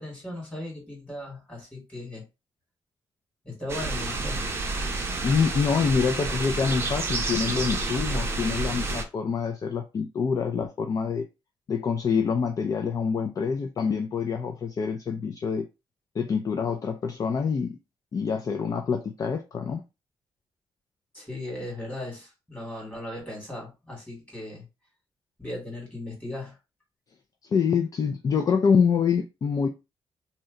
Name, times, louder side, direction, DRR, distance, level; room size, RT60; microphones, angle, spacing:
voice 1, 0.0-2.2 3.4-4.4 21.1-24.7 25.4-26.6, left 1 dB, 15° left, 1.7 m, -37 dB
sound 1, 3.7-9.0, right 3 dB, 25° right, 0.6 m, -29 dB
voice 2, 5.2-11.3 11.7-15.7 16.2-17.8 18.1-19.8 27.5-29.7, left 6 dB, 40° left, 0.3 m, -26 dB
2.8 x 2.1 x 3.6 m
wide cardioid pair, 155°, 9 cm